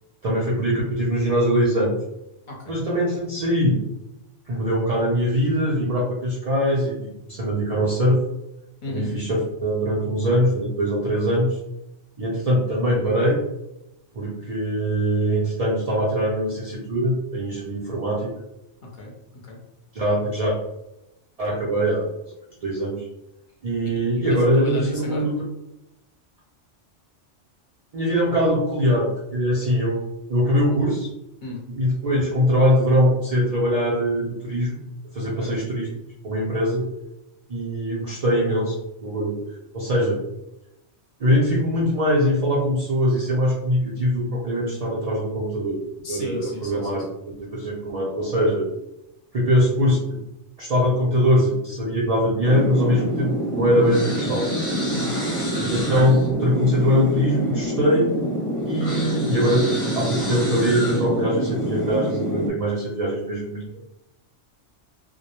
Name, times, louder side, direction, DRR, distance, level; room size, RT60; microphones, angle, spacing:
voice 1, 0.2-2.0 2.7-3.8 4.5-7.0 7.3-8.2 8.9-11.6 12.2-13.4 14.2-18.3 19.9-20.6 21.4-22.1 22.6-23.1 23.6-25.3 27.9-31.1 31.7-34.8 35.1-35.9 36.2-36.8 37.5-39.4 39.7-40.2 41.2-45.8 46.1-47.0 47.4-48.6 49.3-50.2 50.6-54.5 55.6-58.1 58.6-59.7 60.0-63.8, equal, 70° right, -5 dB, 0.3 m, -22 dB
voice 2, 2.5-2.8 8.8-9.1 18.8-19.1 19.4-19.6 24.3-25.3 31.4-31.7 35.4-35.5 46.0-47.0 54.9-55.2, left 2 dB, 50° left, -2 dB, 0.7 m, -34 dB
sound 1, 52.4-62.5, equal, 10° left, 0.7 m, -26 dB
2.1 x 2.0 x 2.8 m, 0.88 s
omnidirectional pair, 1.2 m